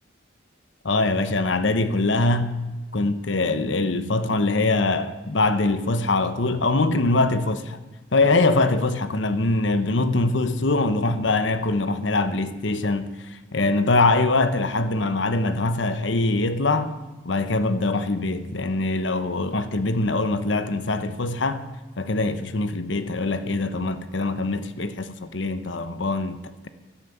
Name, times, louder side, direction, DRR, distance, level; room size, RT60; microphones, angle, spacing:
voice 1, 0.8-2.5 2.9-7.8 8.1-16.9 17.2-21.6 22.0-26.7, left 2 dB, 70° left, 1.0 m, -23 dB
13.5 x 11.5 x 7.2 m
head